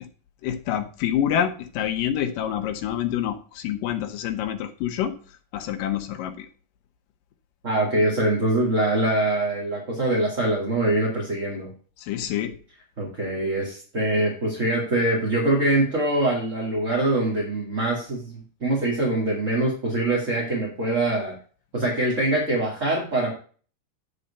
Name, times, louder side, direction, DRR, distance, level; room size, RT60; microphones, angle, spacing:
voice 1, 0.4-5.2 5.5-6.5 12.0-12.6, left 10 dB, 80° left, 8 dB, 2.5 m, -27 dB
voice 2, 7.6-11.7 13.0-21.3 21.7-23.3, right 1 dB, 25° right, -4 dB, 2.1 m, -24 dB
10.0 x 4.9 x 5.4 m, 0.41 s
omnidirectional pair, 3.9 m